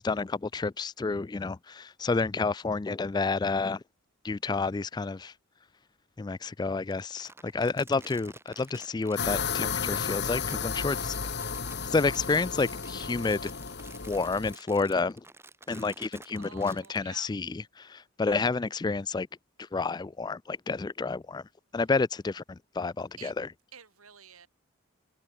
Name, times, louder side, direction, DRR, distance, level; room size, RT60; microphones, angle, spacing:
voice 1, 0.0-3.8 4.2-5.3 6.2-11.2 11.8-13.5 14.1-15.2 15.7-19.3 19.6-21.4 21.7-23.5, left 4 dB, 20° left, 0.3 m, -30 dB
Crumpling crinkling, 6.9-17.0, right 3 dB, 10° right, 4.1 m, -51 dB
sound 1, 9.2-14.6, left 6 dB, 50° left, 1.4 m, -33 dB
voice 2, 16.4-17.3 23.2-23.3 23.7-24.5, right 7 dB, 90° right, 3.4 m, -50 dB
head